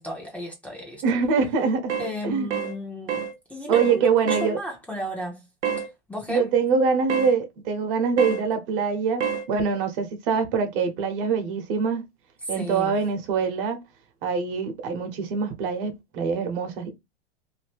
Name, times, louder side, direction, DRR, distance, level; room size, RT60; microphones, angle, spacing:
voice 1, 0.0-1.2 2.0-3.2 3.5-5.4 6.1-6.5 12.5-12.9, equal, 5° left, 0.9 m, -34 dB
voice 2, 1.0-1.9 2.2-2.5 3.7-4.6 6.3-9.2 9.5-12.0 12.5-13.8 14.2-16.9, right 5 dB, 55° right, 1.1 m, -24 dB
sound 1, 1.9-2.1 2.5-2.7 3.1-3.3 3.7-4.0 4.3-4.5 5.6-5.9 7.1-7.3 8.2-8.4 9.2-9.4, right 7 dB, 90° right, 0.9 m, -27 dB
2.8 x 2.6 x 3.4 m
hypercardioid pair, 115°, 34 cm